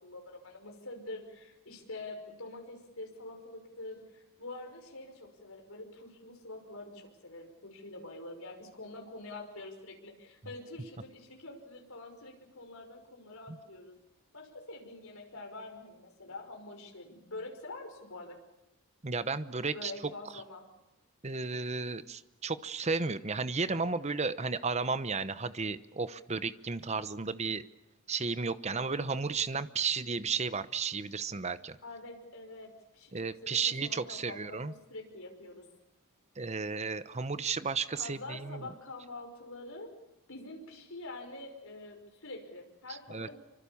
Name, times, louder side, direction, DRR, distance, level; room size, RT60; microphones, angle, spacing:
voice 1, 0.0-14.0 14.3-18.4 19.7-20.7 31.8-35.6 38.0-39.9 40.3-43.4, left 2 dB, 70° left, 2 dB, 5.7 m, -46 dB
voice 2, 19.0-19.9 21.2-27.6 28.1-31.8 33.1-34.7 36.4-38.7 42.9-43.4, right 4 dB, 30° right, 13 dB, 0.9 m, -33 dB
26.5 x 25.0 x 7.2 m, 0.94 s
head